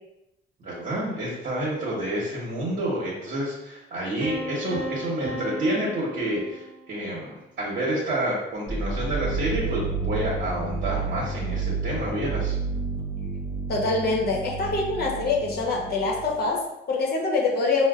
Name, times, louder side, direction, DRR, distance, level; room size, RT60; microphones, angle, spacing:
voice 1, 0.6-12.6, right 1 dB, 55° right, -6 dB, 0.9 m, -29 dB
sound 1, 4.2-7.1, right 1 dB, 30° right, 0.7 m, -35 dB
sound 2, 8.7-16.4, right 4 dB, 15° left, 0.5 m, -30 dB
voice 2, 13.7-17.9, left 3 dB, 50° left, -2 dB, 0.9 m, -25 dB
4.3 x 2.1 x 2.4 m, 0.90 s
cardioid pair, 90°, 20 cm